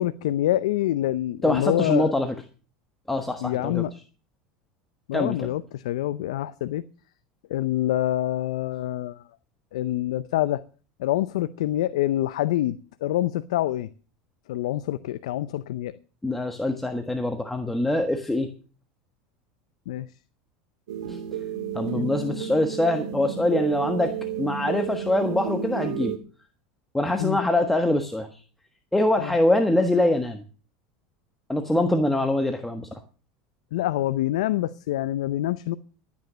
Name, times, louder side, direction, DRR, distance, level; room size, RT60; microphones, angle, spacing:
voice 1, 0.0-2.1 3.4-3.9 5.1-6.8 7.5-9.2 9.7-10.6 11.0-13.9 14.5-15.9 19.9-20.1 21.9-22.3 27.2-27.4 29.2-29.3 33.7-35.8, left 14 dB, 85° left, 14 dB, 0.6 m, -26 dB
voice 2, 1.4-2.3 3.1-3.8 5.1-5.5 16.2-18.5 21.1-21.2 21.7-24.1 24.4-26.1 26.9-28.4 28.9-30.4 31.5-33.0, left 1 dB, 5° left, 6 dB, 1.4 m, -24 dB
sound 1, 20.9-26.2, right 8 dB, 85° right, 2.3 m, -32 dB
13.0 x 9.5 x 6.2 m, 0.37 s
supercardioid pair, 120°, 3 cm